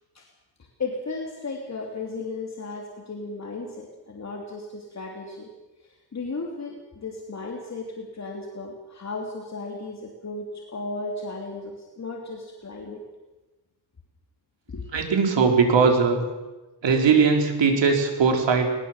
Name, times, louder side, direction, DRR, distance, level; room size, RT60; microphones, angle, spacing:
voice 1, 0.8-5.5 5.8-13.0 14.7-14.8, left 3 dB, 40° left, 0 dB, 3.1 m, -35 dB
voice 2, 14.9-16.2 16.8-18.7, right 5 dB, 80° right, 3 dB, 4.0 m, -20 dB
20.5 x 20.0 x 7.4 m, 1.1 s
wide cardioid pair, 125°, 43 cm